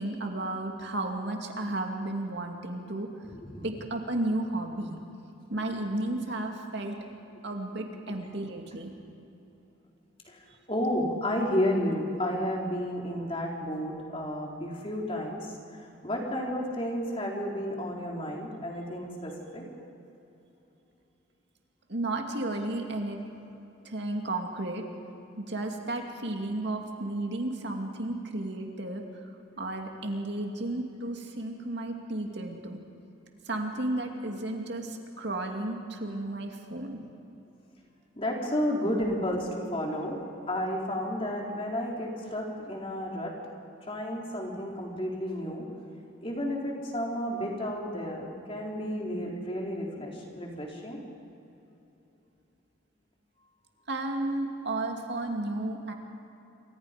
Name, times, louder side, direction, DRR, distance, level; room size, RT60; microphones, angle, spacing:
voice 1, 0.0-3.1 3.6-5.0 5.5-7.0 7.4-8.9 21.9-23.2 23.9-24.8 25.4-29.0 29.6-32.8 33.5-37.0 53.9-55.9, right 2 dB, 60° right, 2 dB, 2.5 m, -33 dB
voice 2, 3.2-3.7 8.1-8.2 10.3-10.4 10.7-15.4 16.0-19.6 38.2-40.2 40.5-43.3 43.9-45.6 46.2-51.0, equal, 30° left, -1 dB, 3.8 m, -32 dB
28.0 x 25.5 x 5.2 m, 2.9 s
head